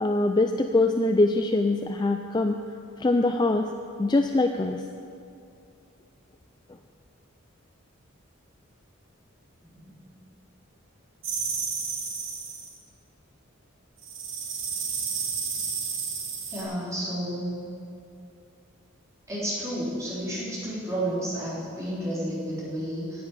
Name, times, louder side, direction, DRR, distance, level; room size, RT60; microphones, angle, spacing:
voice 1, 0.0-2.6 3.0-3.7 4.0-4.8, left 2 dB, 20° left, 6 dB, 0.3 m, -23 dB
voice 2, 9.6-10.2 16.5-17.5 19.3-23.2, right 1 dB, 15° right, -8 dB, 3.8 m, -31 dB
sound 1, 11.2-12.7 14.0-16.6, right 5 dB, 75° right, 2.6 m, -31 dB
10.5 x 8.8 x 8.8 m, 2.5 s
head